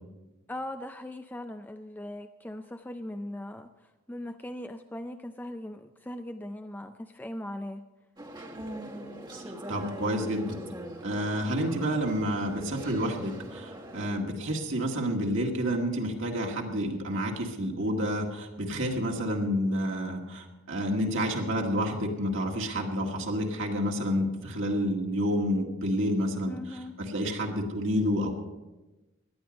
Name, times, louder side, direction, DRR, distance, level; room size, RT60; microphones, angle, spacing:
voice 1, 0.5-3.7 4.1-7.8 26.5-26.9, left 1 dB, 10° left, 8 dB, 0.4 m, -39 dB
sound 1, 8.2-14.1, right 1 dB, 20° right, 1.3 m, -42 dB
voice 2, 9.7-10.6 11.0-28.3, equal, 60° right, 1 dB, 1.8 m, -29 dB
17.5 x 11.0 x 5.2 m, 1.1 s
head